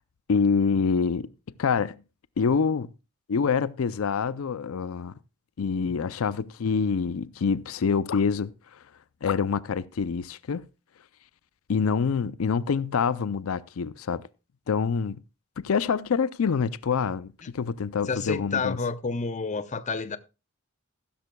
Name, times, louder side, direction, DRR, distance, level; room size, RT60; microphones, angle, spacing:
voice 1, 0.3-1.3 1.6-2.0 2.4-2.9 3.3-5.1 5.6-8.8 9.2-10.6 11.7-14.2 14.7-15.2 15.6-18.8, left 5 dB, 90° left, 0.5 m, -26 dB
voice 2, 18.1-20.2, left 4 dB, 35° left, 0.7 m, -30 dB
15.0 x 13.0 x 2.2 m
head